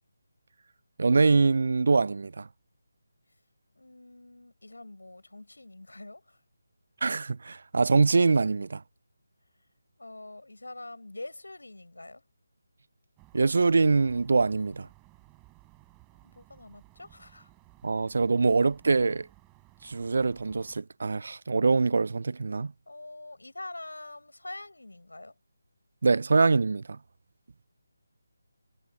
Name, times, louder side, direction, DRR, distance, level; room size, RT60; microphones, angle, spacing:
voice 1, 1.0-2.5 7.0-8.8 13.3-14.9 17.8-19.3 19.8-22.7 26.0-27.0, right 4 dB, 55° right, 0.4 m, -24 dB
voice 2, 3.7-6.4 10.0-12.2 16.1-17.5 22.9-25.3, left 2 dB, 75° left, 5.6 m, -45 dB
sound 1, 13.2-20.8, right 25 dB, 15° right, 5.4 m, -58 dB
figure-of-eight pair, 155°, 0 cm